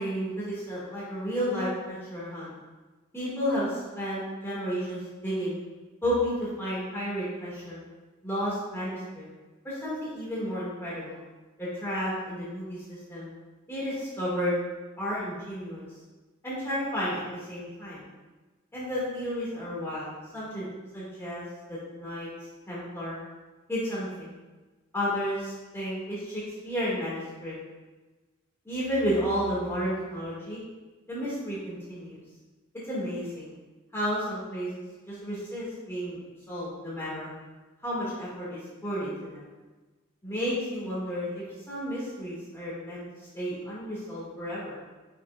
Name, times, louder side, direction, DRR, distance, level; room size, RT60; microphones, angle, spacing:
voice 1, 0.0-2.5 3.1-5.6 6.0-7.8 8.2-9.3 9.6-11.2 11.6-13.3 13.7-14.5 15.0-15.8 16.4-18.0 18.7-20.7 20.9-22.3 22.7-23.2 23.7-24.3 24.9-27.5 28.7-30.6 31.1-32.2 32.9-33.5 33.9-36.2 36.5-37.3 37.8-39.5 40.2-43.0 43.3-44.7, equal, 10° left, -9 dB, 1.8 m, -32 dB
8.0 x 5.9 x 2.3 m, 1.2 s
head